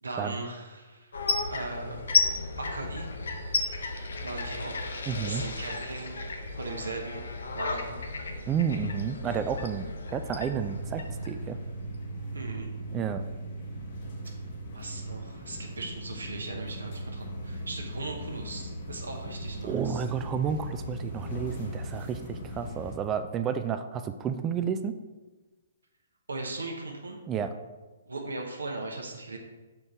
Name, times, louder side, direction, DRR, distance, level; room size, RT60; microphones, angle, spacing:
voice 1, 0.0-1.1 1.5-2.0 2.6-3.1 4.2-4.9 5.2-6.2 6.6-7.2 7.5-8.0 12.3-12.7 14.7-20.0 26.3-27.2 28.1-29.4, right 2 dB, 75° right, 1 dB, 0.9 m, -38 dB
sound 1, 1.1-12.0, left 3 dB, 65° left, 0.8 m, -33 dB
voice 2, 5.1-5.4 8.5-11.6 12.9-13.2 19.6-25.0 27.3-27.5, right 7 dB, 20° right, 9 dB, 0.4 m, -31 dB
sound 2, 10.5-22.9, right 1 dB, 45° left, 1.4 m, -38 dB
6.4 x 4.4 x 3.6 m, 1.2 s
figure-of-eight pair, 125°, 0 cm